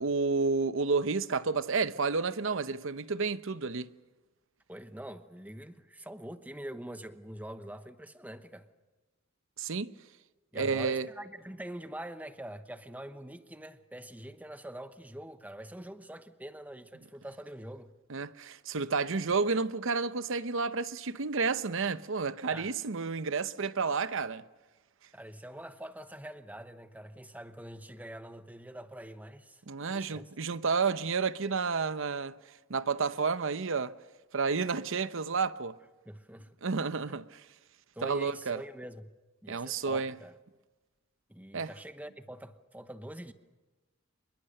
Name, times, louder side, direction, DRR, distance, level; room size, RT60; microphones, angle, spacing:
voice 1, 0.0-3.9 9.6-9.9 10.5-11.1 18.1-24.4 29.7-32.3 32.7-33.9 34.3-35.8 36.6-37.4 38.0-38.6 39.5-40.1 41.5-41.7, right 4 dB, 70° right, 0.8 m, -30 dB
voice 2, 4.7-8.7 10.5-17.9 22.5-22.7 25.1-30.3 36.0-36.5 37.9-39.1 39.4-40.3 41.3-43.3, right 1 dB, 10° right, 1.0 m, -44 dB
26.0 x 22.5 x 6.7 m
head